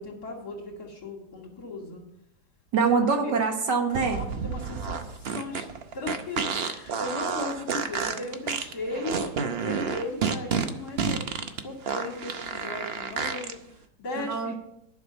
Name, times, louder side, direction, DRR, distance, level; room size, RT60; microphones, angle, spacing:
voice 1, 0.0-2.0 2.7-2.8 3.2-3.3 4.2-5.7 5.9-14.5, left 2 dB, 60° left, 0 dB, 3.0 m, -37 dB
voice 2, 2.7-4.2 14.2-14.5, right 5 dB, 80° right, 4 dB, 2.1 m, -24 dB
sound 1, 3.9-13.5, right 6 dB, 50° right, 0.8 m, -30 dB
11.0 x 6.0 x 7.0 m, 0.81 s
omnidirectional pair, 1.9 m